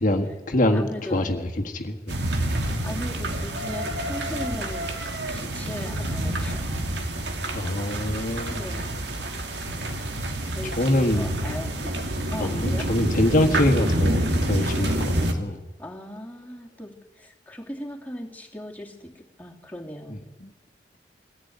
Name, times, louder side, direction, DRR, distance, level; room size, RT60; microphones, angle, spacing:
voice 1, 0.0-2.1 7.5-8.6 10.6-11.3 12.4-15.6 20.1-20.5, left 1 dB, 50° left, 3 dB, 1.6 m, -25 dB
voice 2, 0.7-1.3 2.8-4.9 5.3-6.8 8.2-9.1 10.5-12.0 12.3-12.9 15.8-20.2, left 1 dB, 10° left, 0 dB, 2.8 m, -38 dB
sound 1, 2.1-15.3, right 1 dB, 80° right, 2.7 m, -27 dB
22.5 x 15.0 x 9.5 m, 1.1 s
head